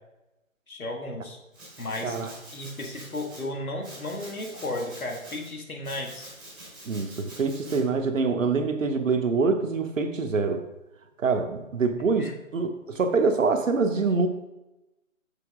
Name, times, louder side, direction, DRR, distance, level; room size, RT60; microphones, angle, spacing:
voice 1, 0.7-1.4 1.8-2.2 2.5-6.3 12.2-12.3, left 1 dB, 90° left, 1 dB, 2.0 m, -34 dB
Domestic sounds home sounds, 1.5-3.4 3.8-5.5 5.8-7.8, right 1 dB, ahead, 0.9 m, -46 dB
voice 2, 6.9-10.6 11.2-14.3, right 4 dB, 65° right, 7 dB, 1.0 m, -25 dB
6.8 x 5.8 x 3.7 m, 0.97 s
figure-of-eight pair, 160°, 41 cm